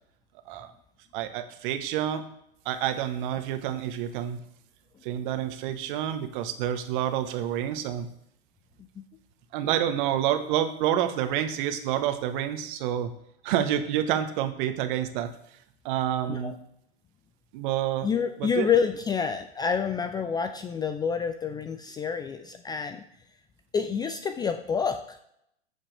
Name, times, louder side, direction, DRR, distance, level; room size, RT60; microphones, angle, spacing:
voice 1, 1.1-2.2 2.6-4.4 5.0-8.1 9.5-13.1 13.4-15.3 15.8-16.5 17.5-18.1 18.4-18.7, right 10 dB, 50° right, 8 dB, 1.3 m, -28 dB
voice 2, 18.0-23.0 23.7-25.2, left 6 dB, 15° left, 8 dB, 0.4 m, -28 dB
14.5 x 7.3 x 3.4 m, 0.75 s
hypercardioid pair, 115°, 32 cm